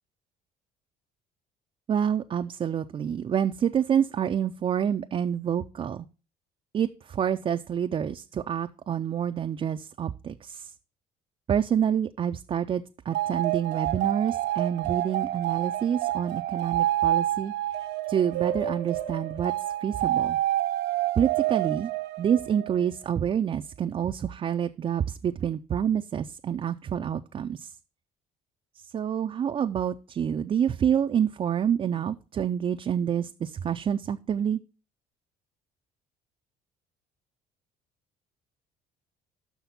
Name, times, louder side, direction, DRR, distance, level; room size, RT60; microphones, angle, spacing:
voice 1, 1.9-6.1 6.7-10.7 11.5-17.5 18.1-19.5 19.8-20.4 21.2-21.9 22.2-27.7 28.9-34.6, right 8 dB, 35° right, 6 dB, 0.4 m, -27 dB
sound 1, 13.1-22.9, right 13 dB, 85° right, 0.8 m, -28 dB
6.0 x 5.8 x 5.6 m, 0.34 s
cardioid pair, 110°, 17 cm